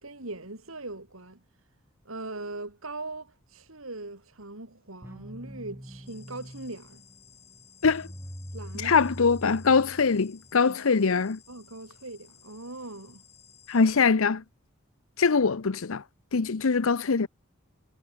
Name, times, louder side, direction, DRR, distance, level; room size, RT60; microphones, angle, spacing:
voice 1, 0.0-1.4 2.0-7.0 8.5-9.0 10.6-10.8 11.5-13.2, right 2 dB, 85° right, 4.2 m, -40 dB
sound 1, 5.0-10.6, equal, 10° right, 5.3 m, -43 dB
sound 2, 6.1-13.9, left 8 dB, 30° left, 5.5 m, -56 dB
voice 2, 8.8-11.4 13.7-14.4 15.2-16.0 16.3-17.3, left 5 dB, 80° left, 0.7 m, -23 dB
head